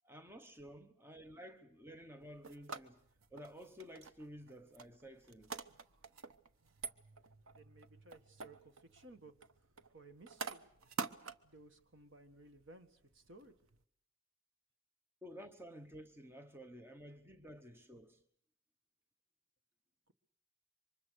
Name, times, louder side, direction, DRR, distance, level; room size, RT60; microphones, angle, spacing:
voice 1, 0.0-3.0 3.3-5.6 15.2-18.2, equal, 10° right, 1.0 m, -53 dB
sound 1, 2.2-13.8, right 5 dB, 85° right, 1.0 m, -49 dB
voice 2, 7.5-9.3 9.9-10.7 11.4-13.6, right 2 dB, 65° right, 1.7 m, -58 dB
27.5 x 24.5 x 6.6 m
head